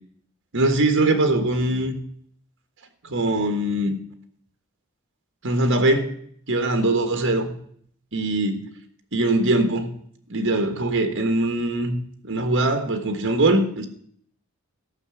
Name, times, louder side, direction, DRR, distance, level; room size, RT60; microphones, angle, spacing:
voice 1, 0.5-1.9 3.0-4.0 5.4-6.1 6.5-7.5 8.1-8.6 9.1-9.9 10.3-12.0 12.2-13.9, right 2 dB, 60° right, 7 dB, 1.4 m, -21 dB
14.0 x 5.8 x 7.1 m, 0.64 s
head